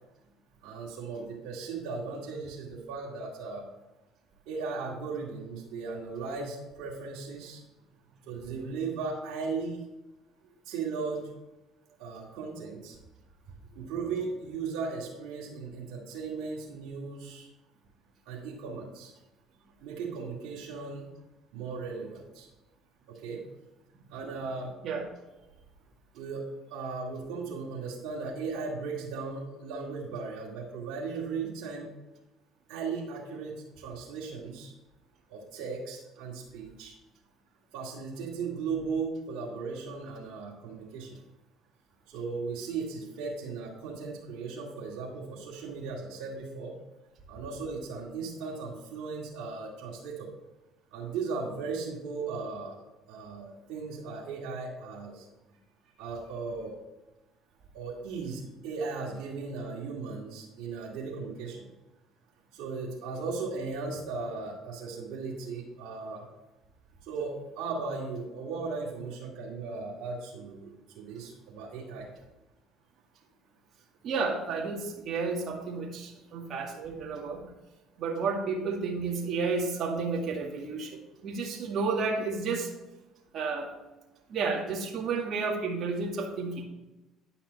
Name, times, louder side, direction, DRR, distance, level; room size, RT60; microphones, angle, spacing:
voice 1, 0.6-3.7 4.5-7.6 8.3-9.8 10.7-11.3 12.0-13.0 13.8-17.5 18.3-19.1 19.8-21.1 21.5-22.5 23.1-23.4 24.1-24.7 26.1-31.9 32.7-34.7 35.3-37.0 37.7-41.2 42.1-46.8 47.3-50.3 50.9-52.8 53.1-55.3 56.0-56.7 57.7-61.6 62.5-66.3 67.1-70.7 70.9-72.1, right 4 dB, 75° right, -5 dB, 2.2 m, -37 dB
voice 2, 74.0-77.4 78.0-81.0 81.2-82.7 83.3-83.7 84.3-86.6, right 4 dB, 55° right, -1 dB, 2.0 m, -31 dB
10.5 x 5.8 x 4.2 m, 1.0 s
supercardioid pair, 85°, 0 cm